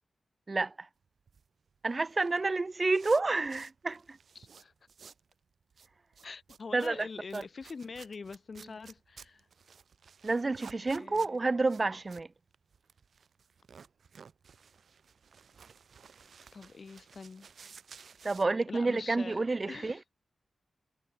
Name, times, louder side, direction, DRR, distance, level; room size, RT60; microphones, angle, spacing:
voice 1, 0.5-0.9 1.8-4.2 6.7-7.1 7.3-7.4 10.2-12.3 18.2-20.0, right 3 dB, 30° right, 1.2 m, -29 dB
sound 1, 1.1-5.3 5.6-18.4, right 6 dB, 70° right, 4.5 m, -55 dB
voice 2, 4.3-4.7 6.2-9.5 10.9-11.4 16.5-17.5 18.7-20.0, left 4 dB, 50° left, 2.7 m, -45 dB
wide cardioid pair, 125°, 0 cm